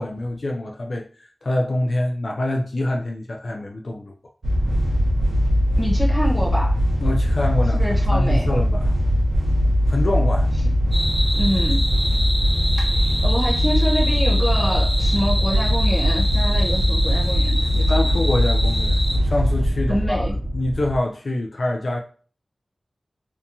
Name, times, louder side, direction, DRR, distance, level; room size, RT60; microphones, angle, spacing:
voice 1, 0.0-4.1 7.0-7.8 8.1-9.0 9.9-10.5 17.9-20.3 20.5-22.0, left 1 dB, 65° left, 0.3 m, -25 dB
sound 1, 4.4-21.0, equal, 80° right, 0.6 m, -20 dB
voice 2, 5.8-6.8 7.7-8.5 11.3-11.9 13.2-18.1 19.9-20.3, equal, 10° left, 1.0 m, -26 dB
sound 2, 10.9-19.2, equal, 10° right, 0.7 m, -27 dB
2.8 x 2.2 x 2.6 m
wide cardioid pair, 80°, 0 cm